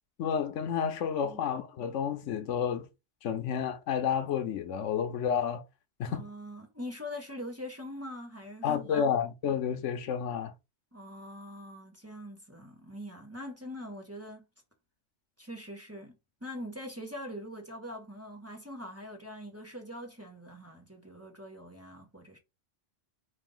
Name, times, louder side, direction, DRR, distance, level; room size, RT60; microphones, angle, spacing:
voice 1, 0.2-2.9 3.2-5.6 6.0-6.2 8.6-10.5, left 7 dB, 80° left, 1.0 m, -30 dB
voice 2, 6.1-9.1 10.9-14.5 15.4-16.2 16.4-22.4, left 1 dB, 15° right, 1.0 m, -43 dB
5.2 x 2.6 x 3.8 m
omnidirectional pair, 1.2 m